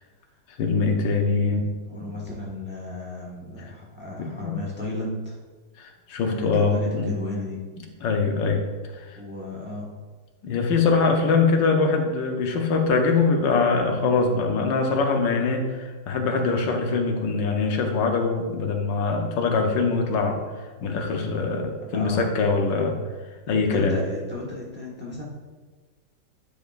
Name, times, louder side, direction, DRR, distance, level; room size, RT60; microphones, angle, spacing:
voice 1, 0.6-1.6 4.2-4.6 5.8-7.1 8.0-8.6 8.9-9.2 10.4-20.4 20.8-23.0 23.5-24.0, left 4 dB, 85° left, 3 dB, 1.5 m, -23 dB
voice 2, 1.9-5.4 6.3-7.6 9.1-9.9 21.9-22.3 23.7-25.2, left 2 dB, 5° right, -4 dB, 1.0 m, -34 dB
10.5 x 4.9 x 2.5 m, 1.3 s
omnidirectional pair, 1.9 m